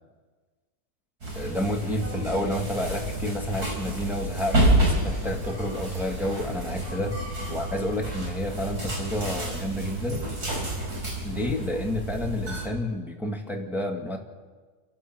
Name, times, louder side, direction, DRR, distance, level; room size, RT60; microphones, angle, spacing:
sound 1, 1.2-12.7, right 1 dB, 80° right, 5.2 m, -29 dB
voice 1, 1.3-7.1 7.5-10.3 11.2-14.2, left 1 dB, ahead, 0 dB, 2.3 m, -30 dB
29.0 x 15.0 x 6.3 m, 1.4 s
omnidirectional pair, 1.6 m